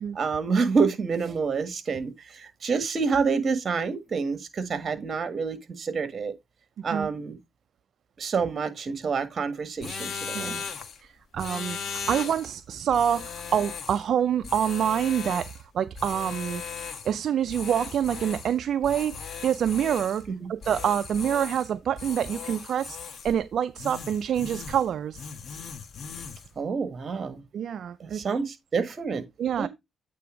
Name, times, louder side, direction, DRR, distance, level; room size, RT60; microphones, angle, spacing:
voice 1, 0.1-6.3 6.8-7.4 8.2-10.6 20.3-20.5 26.6-27.4 28.0-29.3 29.6-29.7, right 5 dB, 45° right, 1.6 m, -28 dB
sound 1, 9.8-11.0 11.4-12.5 12.9-14.1 14.4-15.6 15.9-17.2 17.5-18.6 18.8-20.2 20.6-21.7 22.0-23.4 23.8-24.9 25.1-26.5, left 6 dB, 55° left, 1.2 m, -38 dB
voice 2, 10.3-10.6 11.0-15.5 15.7-16.6 17.0-25.3 27.5-28.2 29.4-29.7, right 9 dB, 65° right, 0.4 m, -27 dB
8.5 x 3.4 x 5.0 m
cardioid pair, 90°, 0 cm